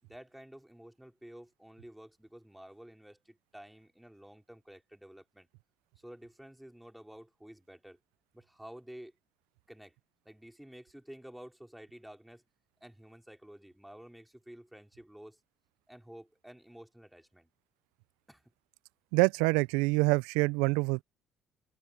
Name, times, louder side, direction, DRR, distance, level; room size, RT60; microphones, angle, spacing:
voice 1, 0.0-5.5 6.0-8.0 8.3-9.1 9.7-9.9 10.2-12.4 12.8-15.4 15.9-17.5 18.3-18.4, right 1 dB, 5° right, 4.7 m, -51 dB
voice 2, 19.1-21.0, right 26 dB, 85° right, 0.3 m, -26 dB
supercardioid pair, 60°, 0 cm